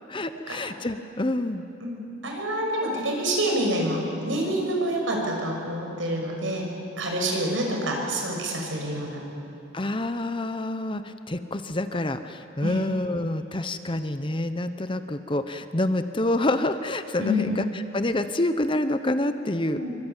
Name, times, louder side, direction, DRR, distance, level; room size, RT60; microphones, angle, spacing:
voice 1, 0.1-1.6 9.7-19.8, left 1 dB, 25° left, 10 dB, 0.8 m, -27 dB
voice 2, 1.8-6.7 7.0-9.2 12.6-12.8 17.2-17.5 19.7-20.0, equal, 70° right, 0 dB, 6.4 m, -27 dB
24.5 x 24.0 x 9.1 m, 2.8 s
head